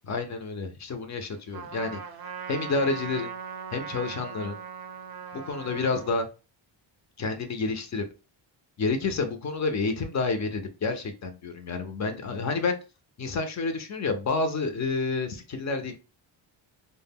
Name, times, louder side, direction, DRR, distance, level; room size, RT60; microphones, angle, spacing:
voice 1, 0.0-2.0 2.5-3.3 3.7-4.6 5.3-6.3 7.2-8.0 8.8-12.8 13.2-16.0, left 3 dB, 40° left, 6 dB, 0.4 m, -29 dB
Trumpet, 1.5-6.2, right 7 dB, 50° right, 0.5 m, -39 dB
2.1 x 2.1 x 3.4 m, 0.32 s
cardioid pair, 135°, 48 cm